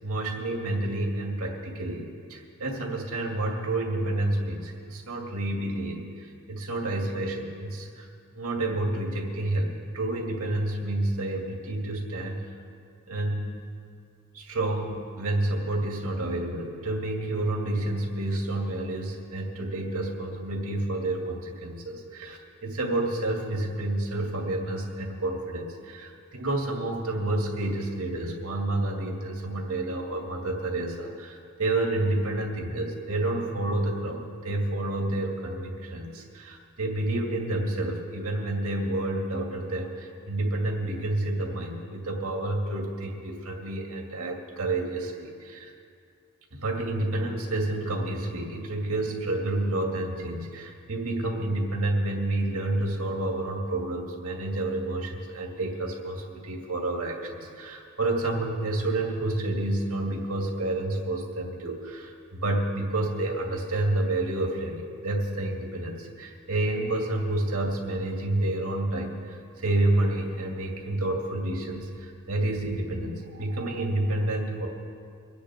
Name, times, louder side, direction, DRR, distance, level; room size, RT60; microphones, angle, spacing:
voice 1, 0.0-8.1 8.3-12.4 13.1-13.5 14.3-45.7 46.5-74.7, right 2 dB, 75° right, 0 dB, 2.3 m, -29 dB
24.5 x 10.0 x 3.7 m, 2.3 s
head